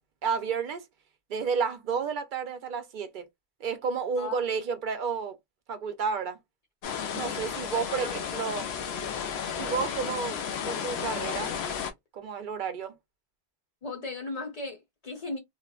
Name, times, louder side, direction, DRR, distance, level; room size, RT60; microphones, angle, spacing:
voice 1, 0.2-0.8 1.3-3.3 3.6-5.4 5.7-6.4 7.1-8.7 9.6-10.4 10.7-11.5 12.1-13.0, right 6 dB, 60° right, 0.6 m, -31 dB
sound 1, 6.8-11.9, left 7 dB, 85° left, 0.9 m, -33 dB
voice 2, 8.0-8.4 13.8-15.4, left 3 dB, 40° left, 0.9 m, -37 dB
3.0 x 2.0 x 2.3 m
omnidirectional pair, 1.0 m